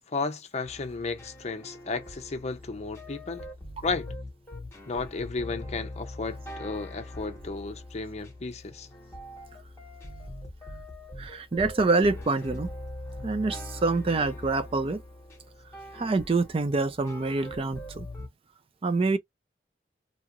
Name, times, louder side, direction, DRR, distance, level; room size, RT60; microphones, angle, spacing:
voice 1, 0.1-3.5 3.8-4.1 4.9-8.9, left 4 dB, 35° left, 0.5 m, -33 dB
sound 1, 0.6-18.3, left 1 dB, 15° left, 1.1 m, -42 dB
voice 2, 11.2-12.7 13.2-15.0 15.9-18.1 18.8-19.2, right 3 dB, 30° right, 0.4 m, -26 dB
2.8 x 2.4 x 2.9 m
head